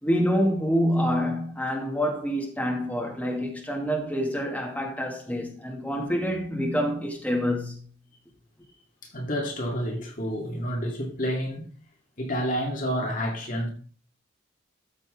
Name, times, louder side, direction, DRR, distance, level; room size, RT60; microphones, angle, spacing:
voice 1, 0.0-7.8, equal, 10° left, 2.4 m, -27 dB
voice 2, 9.0-11.7 12.2-13.7, equal, 40° left, 2.3 m, -29 dB
13.5 x 7.6 x 3.8 m
head